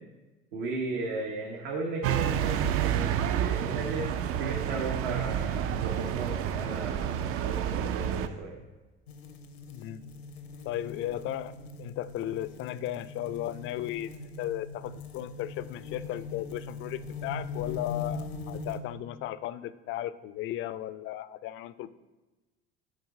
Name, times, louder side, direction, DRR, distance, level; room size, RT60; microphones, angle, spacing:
voice 1, 0.5-8.5, right 3 dB, 65° right, -2 dB, 1.2 m, -35 dB
sound 1, 2.0-8.3, right 9 dB, 45° right, 0.5 m, -29 dB
sound 2, 9.1-18.8, left 4 dB, 85° left, 0.7 m, -41 dB
voice 2, 9.7-10.0 10.6-22.0, left 13 dB, 40° left, 15 dB, 0.4 m, -36 dB
6.5 x 4.0 x 6.0 m, 1.2 s
hypercardioid pair, 65°, 31 cm